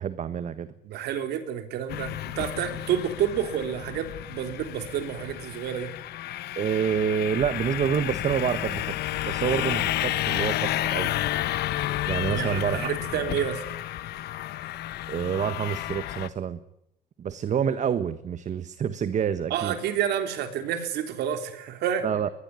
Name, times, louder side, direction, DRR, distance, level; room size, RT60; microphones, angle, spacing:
voice 1, 0.0-0.7 6.5-9.0 9.2-11.2 12.1-12.9 15.1-16.6 17.2-19.7 22.0-22.3, right 8 dB, 45° right, 12 dB, 1.4 m, -27 dB
voice 2, 0.8-5.9 12.3-13.6 19.5-22.1, right 9 dB, 75° right, 7 dB, 3.6 m, -29 dB
sound 1, 1.9-16.3, left 14 dB, 75° left, 1.3 m, -31 dB
23.0 x 21.0 x 9.7 m, 0.80 s
cardioid pair, 110°, 17 cm